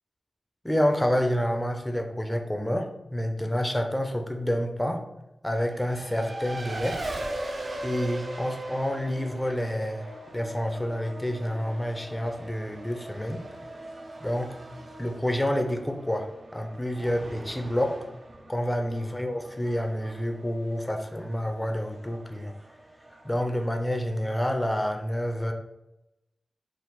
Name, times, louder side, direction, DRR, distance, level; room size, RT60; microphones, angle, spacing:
voice 1, 0.6-5.0 5.4-7.0 7.8-13.4 14.2-14.6 15.0-18.0 18.5-22.5 23.2-25.5, equal, 10° left, 5 dB, 0.5 m, -28 dB
Race car auto racing, 5.5-24.7, right 1 dB, 50° right, 0.6 m, -41 dB
4.5 x 2.5 x 3.8 m, 0.92 s
wide cardioid pair, 85°, 0 cm